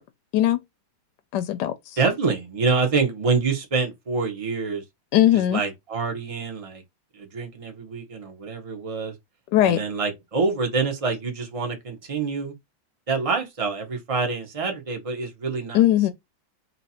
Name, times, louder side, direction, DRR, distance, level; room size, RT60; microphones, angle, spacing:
voice 1, 1.3-2.0 5.1-5.6 9.5-9.8 15.7-16.1, left 13 dB, 75° left, 1.0 m, -19 dB
voice 2, 2.0-4.8 5.5-6.8 7.1-9.1 9.6-12.5 13.1-15.8, right 4 dB, 65° right, 0.3 m, -26 dB
3.2 x 2.8 x 4.1 m
omnidirectional pair, 2.2 m